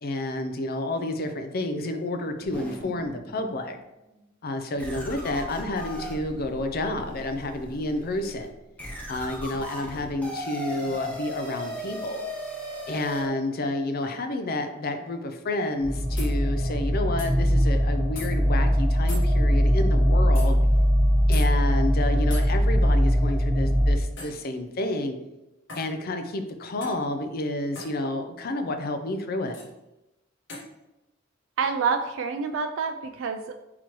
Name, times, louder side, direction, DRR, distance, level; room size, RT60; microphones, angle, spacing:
voice 1, 0.0-3.8 4.4-8.5 9.1-12.3 12.9-20.6 21.3-25.2 25.7-29.6, left 2 dB, 50° left, 7 dB, 0.5 m, -30 dB
sound 1, 2.4-3.6 4.1-4.2 4.8-13.2, equal, 10° left, 0.9 m, -37 dB
sound 2, 15.8-23.9, equal, 25° right, 1.1 m, -21 dB
sound 3, 16.2-16.3 17.2-17.3 18.2-18.3 19.1-19.3 20.4-20.5 21.3-21.5 22.3-22.5 24.2-24.4 25.7-25.9 26.8-27.0 27.8-27.9 29.5-29.7 30.5-30.7, left 2 dB, 65° left, 1.3 m, -40 dB
voice 2, 31.6-33.6, right 5 dB, 75° right, 6 dB, 0.4 m, -27 dB
4.4 x 4.0 x 3.0 m, 0.97 s
head